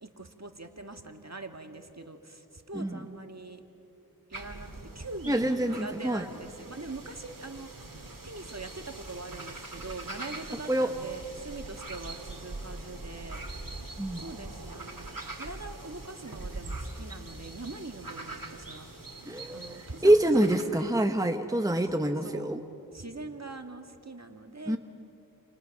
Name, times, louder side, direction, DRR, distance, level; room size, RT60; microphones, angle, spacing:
voice 1, 0.0-3.6 4.3-4.7 5.0-13.4 14.2-18.9 19.5-20.9 21.9-22.5 22.9-24.8, right 3 dB, 45° right, 6 dB, 1.9 m, -43 dB
sound 1, 4.3-20.6, right 2 dB, 60° right, 2.6 m, -42 dB
voice 2, 5.3-6.2 10.7-10.9 14.0-14.2 19.3-22.6 24.7-24.8, right 1 dB, 10° right, 6 dB, 1.1 m, -26 dB
29.0 x 29.0 x 6.6 m, 3.0 s
wide cardioid pair, 45°, 38 cm